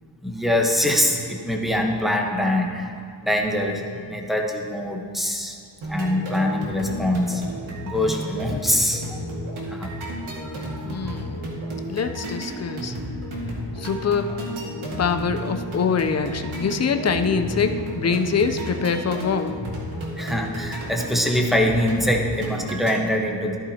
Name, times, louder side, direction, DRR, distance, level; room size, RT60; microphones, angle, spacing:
voice 1, 0.2-2.9 3.2-5.6 5.9-7.4 7.8-9.2 9.7-9.9 10.4-11.1 20.2-23.6, left 1 dB, ahead, 1 dB, 1.1 m, -24 dB
sound 1, 5.8-23.0, equal, 85° right, 2.0 m, -32 dB
voice 2, 10.9-11.4 11.8-12.9 13.8-14.3 14.9-19.5, left 5 dB, 35° left, 8 dB, 0.6 m, -24 dB
13.5 x 11.5 x 2.9 m, 2.2 s
wide cardioid pair, 120°, 47 cm